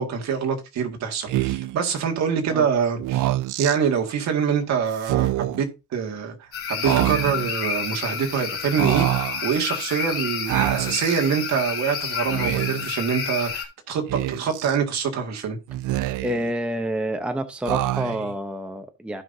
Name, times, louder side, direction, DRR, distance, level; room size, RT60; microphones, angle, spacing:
voice 1, 0.0-3.3 3.6-15.6, right 7 dB, 60° right, 1.9 m, -25 dB
Speech, 1.3-1.8 3.0-3.8 5.0-5.6 6.8-7.5 8.8-9.4 10.5-11.2 12.3-12.9 14.1-14.8 15.7-16.5 17.7-18.4, right 15 dB, 75° right, 0.5 m, -25 dB
sound 1, 6.5-13.6, left 6 dB, 45° left, 2.9 m, -30 dB
voice 2, 16.2-19.2, right 1 dB, 5° right, 0.8 m, -28 dB
15.5 x 5.6 x 2.7 m
cardioid pair, 150°, 31 cm